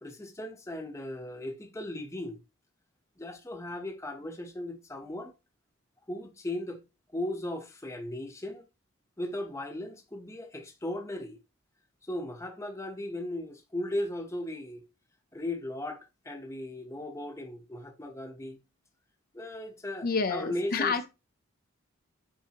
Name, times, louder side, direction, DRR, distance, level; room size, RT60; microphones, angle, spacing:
voice 1, 0.0-2.4 3.2-5.3 6.1-6.8 7.1-8.6 9.2-11.4 12.0-14.8 15.3-18.6 19.3-21.0, left 1 dB, 15° left, 0.8 m, -37 dB
voice 2, 20.0-21.1, left 4 dB, 45° left, 0.6 m, -29 dB
7.2 x 4.7 x 2.9 m
head